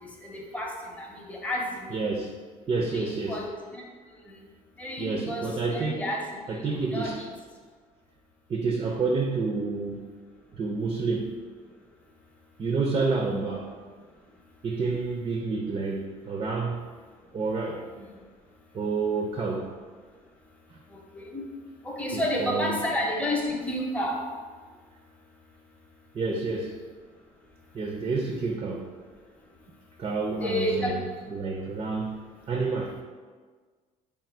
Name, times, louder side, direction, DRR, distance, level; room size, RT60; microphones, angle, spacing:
voice 1, 0.0-2.0 2.9-3.8 4.3-4.4 4.8-6.3 6.7-7.3 14.7-14.9 17.9-18.1 21.2-21.4 21.8-24.2 30.3-31.1, left 1 dB, 10° left, -2 dB, 0.6 m, -31 dB
voice 2, 1.9-2.4 2.7-3.4 5.0-6.1 6.5-7.2 8.5-10.1 10.5-11.4 12.6-13.7 14.6-16.9 17.3-17.9 18.7-19.8 20.7-20.8 22.1-22.9 26.1-26.8 27.7-28.9 30.0-32.2 32.5-33.0, right 4 dB, 30° right, 2 dB, 0.4 m, -29 dB
3.4 x 2.4 x 4.2 m, 1.5 s
cardioid pair, 110°, 17 cm